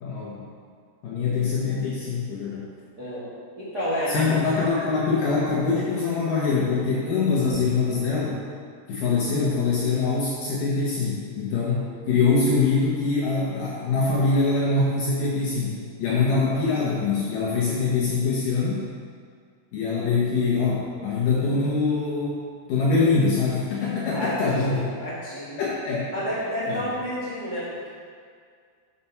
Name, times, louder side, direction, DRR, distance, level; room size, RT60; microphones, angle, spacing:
voice 1, 0.0-0.4 1.0-2.7 4.1-8.4 8.9-18.8 19.7-22.4 22.7-24.8 25.6-26.1 26.7-26.8, left 4 dB, 70° left, -6 dB, 2.1 m, -24 dB
voice 2, 3.0-4.3 24.1-25.6 26.1-27.9, equal, 65° right, -10 dB, 1.0 m, -30 dB
7.1 x 5.9 x 5.6 m, 2.1 s
omnidirectional pair, 5.1 m